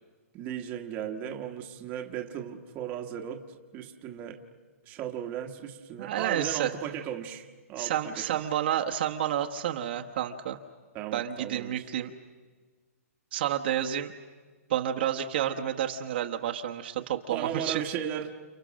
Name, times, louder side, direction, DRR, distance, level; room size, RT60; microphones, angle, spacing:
voice 1, 0.3-4.4 4.8-8.4 10.9-11.8 17.3-18.4, right 9 dB, 20° right, 3 dB, 1.4 m, -36 dB
voice 2, 6.0-6.7 7.8-10.6 11.1-12.1 13.3-14.1 14.7-17.8, right 10 dB, 40° right, 3 dB, 1.2 m, -30 dB
30.0 x 29.0 x 6.4 m, 1.5 s
hypercardioid pair, 170°, 8 cm